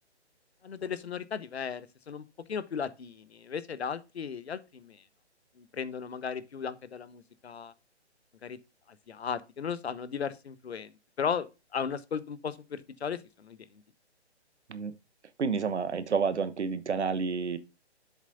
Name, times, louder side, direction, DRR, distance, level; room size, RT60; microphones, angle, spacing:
voice 1, 0.6-5.0 5.6-7.7 8.4-8.6 9.1-10.9 11.2-13.6, left 6 dB, 65° left, 1.1 m, -36 dB
voice 2, 15.4-17.6, right 5 dB, 75° right, 1.1 m, -29 dB
7.5 x 7.2 x 2.6 m
figure-of-eight pair, 145°, 34 cm